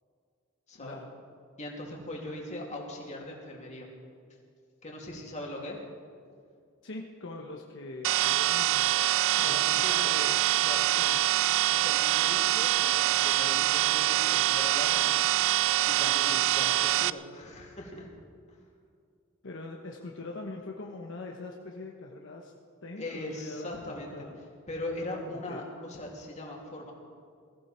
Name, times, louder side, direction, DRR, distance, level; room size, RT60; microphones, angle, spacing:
voice 1, 0.8-1.1 6.8-10.4 11.0-11.2 19.4-22.5 22.8-24.4 25.1-25.7, left 2 dB, 65° left, 1 dB, 1.2 m, -43 dB
voice 2, 1.6-3.9 4.8-5.8 9.4-10.1 10.6-10.9 11.7-15.1 15.9-18.1 18.5-18.6 23.0-24.3 24.7-26.9, left 1 dB, 35° left, -1 dB, 2.9 m, -40 dB
sound 1, 8.0-17.1, right 14 dB, 65° right, 0.3 m, -25 dB
21.0 x 14.5 x 4.5 m, 2.3 s
head